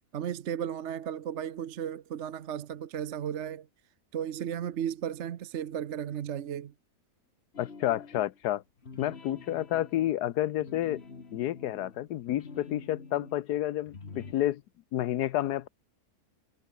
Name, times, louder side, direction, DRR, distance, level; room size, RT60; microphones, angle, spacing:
voice 1, 0.1-3.7 4.1-6.7, right 9 dB, 55° right, 1.0 m, -35 dB
sound 1, 7.5-8.4 8.8-13.4 13.8-14.3, left 4 dB, 40° left, 2.3 m, -47 dB
voice 2, 7.6-8.6 9.0-11.0 11.3-14.6 14.9-15.7, left 13 dB, 85° left, 1.3 m, -30 dB
omnidirectional pair, 1.7 m